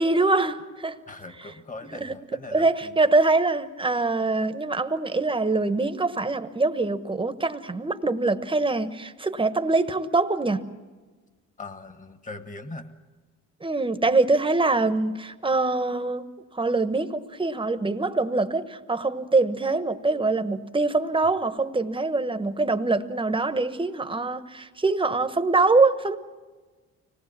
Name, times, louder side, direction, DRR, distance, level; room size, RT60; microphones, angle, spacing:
voice 1, 0.0-0.9 1.9-2.1 2.5-10.6 13.6-16.2 16.5-26.2, right 3 dB, 15° right, 1.2 m, -24 dB
voice 2, 1.1-2.9 11.6-12.9, left 3 dB, 25° left, 1.7 m, -40 dB
25.0 x 19.0 x 7.4 m
cardioid pair, 90°, 30 cm